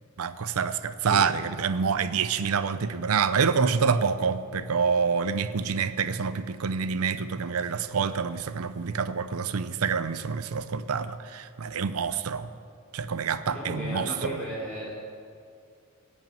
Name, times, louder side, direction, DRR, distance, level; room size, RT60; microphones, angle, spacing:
voice 1, 0.2-12.5 12.9-14.4, right 6 dB, 75° right, 0.5 m, -27 dB
voice 2, 13.4-14.9, equal, 5° left, 3.7 m, -35 dB
16.0 x 5.4 x 9.0 m
head